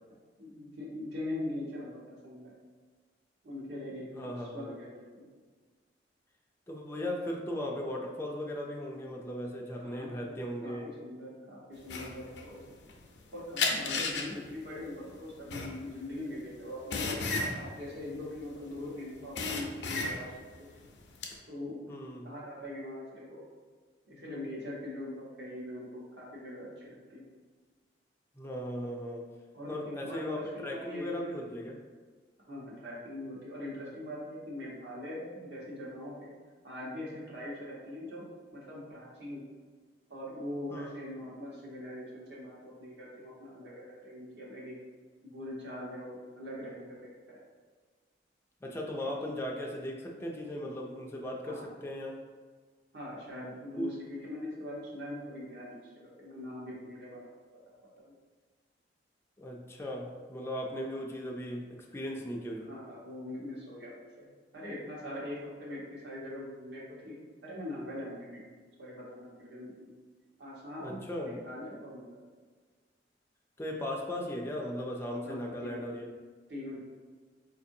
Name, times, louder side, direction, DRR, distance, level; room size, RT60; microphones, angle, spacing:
voice 1, 0.4-2.5 3.4-5.2 9.8-10.2 10.6-12.8 13.3-17.2 17.5-20.9 21.4-21.8 22.2-23.4 24.1-27.3 29.5-30.3 30.5-31.2 32.5-36.3 36.6-38.2 38.5-39.5 40.1-44.7 45.2-47.4 49.1-49.2 51.4-51.7 52.9-57.3 58.0-58.1 62.6-68.5 68.8-69.9 70.4-72.2 75.2-75.9 76.5-76.8, left 1 dB, 70° right, -5 dB, 1.1 m, -42 dB
voice 2, 4.1-4.7 6.7-10.9 21.9-22.3 28.4-29.3 29.7-30.4 30.6-31.8 40.7-41.0 48.6-52.2 53.8-53.9 59.4-62.7 70.8-71.4 73.6-76.1, left 1 dB, 15° left, -1 dB, 0.3 m, -37 dB
sound 1, 11.9-13.2 13.6-18.8 19.1-20.5 20.9-21.3, left 3 dB, 70° left, 0.5 m, -33 dB
4.4 x 2.6 x 2.6 m, 1.5 s
head